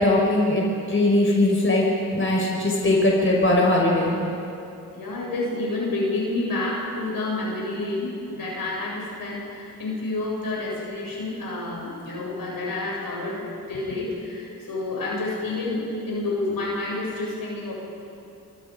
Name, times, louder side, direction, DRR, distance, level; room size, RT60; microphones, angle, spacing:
voice 1, 0.0-4.1, left 1 dB, 35° left, -2 dB, 5.8 m, -20 dB
voice 2, 4.9-17.7, left 2 dB, 75° left, -3 dB, 7.8 m, -29 dB
27.5 x 25.0 x 5.4 m, 2.7 s
cardioid pair, 60°, 35 cm